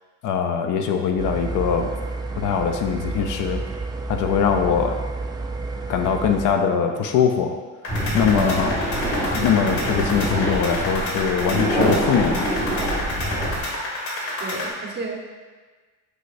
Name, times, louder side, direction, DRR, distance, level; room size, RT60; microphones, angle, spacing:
voice 1, 0.2-1.9 2.4-3.6 4.1-5.0 5.9-7.6 8.1-8.7 9.3-12.5, left 7 dB, 55° left, 5 dB, 0.6 m, -22 dB
sound 1, 1.2-6.5, right 3 dB, 10° right, 0.3 m, -30 dB
sound 2, 7.8-14.7, left 1 dB, 80° left, 1.9 m, -29 dB
sound 3, 7.9-13.6, right 1 dB, 5° left, 1.7 m, -25 dB
voice 2, 8.3-8.7 14.4-15.2, right 3 dB, 30° right, -1 dB, 1.3 m, -32 dB
6.9 x 6.4 x 2.6 m, 1.4 s
cardioid pair, 115°, 37 cm